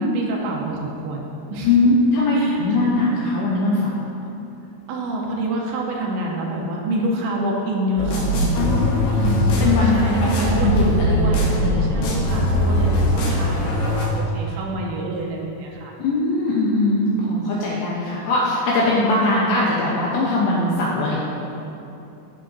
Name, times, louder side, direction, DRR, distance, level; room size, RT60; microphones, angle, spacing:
voice 1, 0.0-1.8 2.3-2.9 4.9-8.6 9.8-15.9, right 1 dB, 80° right, -1 dB, 2.7 m, -27 dB
voice 2, 1.6-4.0 8.5-11.3 11.6-12.2 16.0-21.2, left 2 dB, 85° left, -5 dB, 2.5 m, -21 dB
sound 1, 8.0-14.0, equal, 70° left, 2.8 m, -20 dB
13.5 x 6.0 x 2.6 m, 2.9 s
omnidirectional pair, 5.8 m